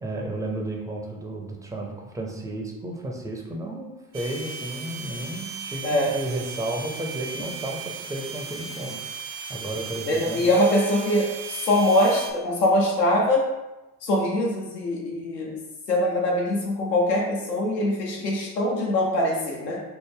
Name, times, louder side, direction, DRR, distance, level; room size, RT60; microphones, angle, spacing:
voice 1, 0.0-10.4, right 1 dB, 10° right, -1 dB, 0.4 m, -33 dB
sound 1, 4.1-12.3, right 5 dB, 70° right, 0.6 m, -36 dB
voice 2, 5.8-6.1 10.1-13.4 14.0-15.6 15.9-19.8, left 1 dB, 85° left, -2 dB, 0.7 m, -23 dB
3.3 x 2.1 x 3.3 m, 1.0 s
hypercardioid pair, 65°, 48 cm